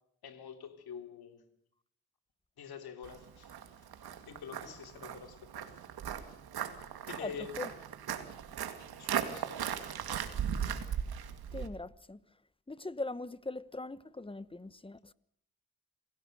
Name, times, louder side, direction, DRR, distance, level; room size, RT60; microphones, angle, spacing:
voice 1, 0.2-1.5 2.6-3.5 4.3-5.7 7.0-7.5 9.0-9.6, left 7 dB, 85° left, 3.1 m, -46 dB
Walk footsteps, 3.0-11.7, right 8 dB, 85° right, 2.3 m, -38 dB
voice 2, 7.2-7.7 11.5-12.2 12.7-15.1, left 2 dB, 15° left, 0.9 m, -41 dB
27.5 x 17.5 x 6.7 m
cardioid pair, 70°, 37 cm